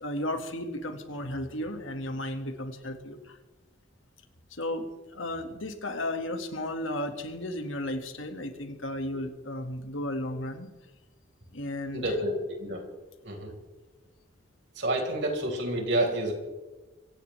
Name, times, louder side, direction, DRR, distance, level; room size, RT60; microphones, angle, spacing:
voice 1, 0.0-3.4 4.5-10.7 11.5-12.0, left 1 dB, 80° left, 5 dB, 2.1 m, -34 dB
voice 2, 11.9-12.8 13.2-13.5 14.7-16.3, right 1 dB, 60° right, 1 dB, 4.8 m, -29 dB
24.5 x 17.0 x 3.4 m, 1.2 s
head